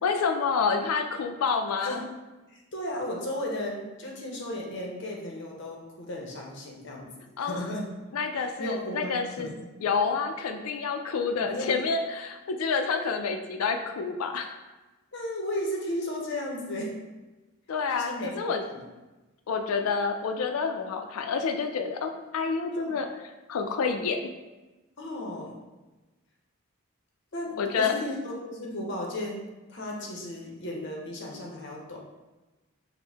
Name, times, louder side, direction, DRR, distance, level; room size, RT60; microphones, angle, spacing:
voice 1, 0.0-2.0 7.4-7.6 8.1-9.5 9.8-14.5 17.7-18.6 19.5-23.1 23.5-24.2 27.6-27.9, left 5 dB, 80° left, 6 dB, 0.4 m, -28 dB
voice 2, 2.5-7.1 7.4-7.9 8.4-9.5 11.4-11.7 15.1-17.0 18.0-18.4 18.7-18.8 22.7-22.9 25.0-25.6 27.3-32.0, left 1 dB, 55° left, -1 dB, 0.7 m, -35 dB
4.3 x 2.1 x 3.4 m, 1.1 s
head